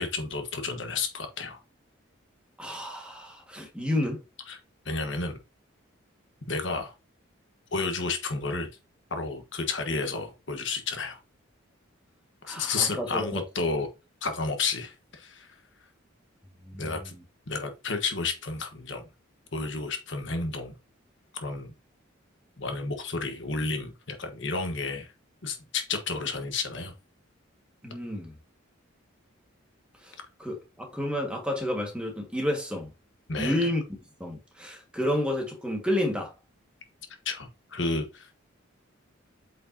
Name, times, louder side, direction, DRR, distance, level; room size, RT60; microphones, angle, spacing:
voice 1, 0.0-1.6 4.5-4.6 4.8-5.4 6.5-6.9 7.7-8.7 9.1-11.2 12.4-13.9 14.2-15.6 16.8-17.1 17.5-19.0 19.5-20.7 21.3-21.7 22.6-25.1 25.4-26.9 33.3-33.7 37.2-38.4, left 4 dB, 60° left, 1.3 m, -31 dB
voice 2, 2.6-4.2 12.4-13.4 16.6-17.1 27.8-28.3 30.0-32.9 33.4-36.3, left 1 dB, 5° right, 1.7 m, -31 dB
8.5 x 5.0 x 2.8 m
head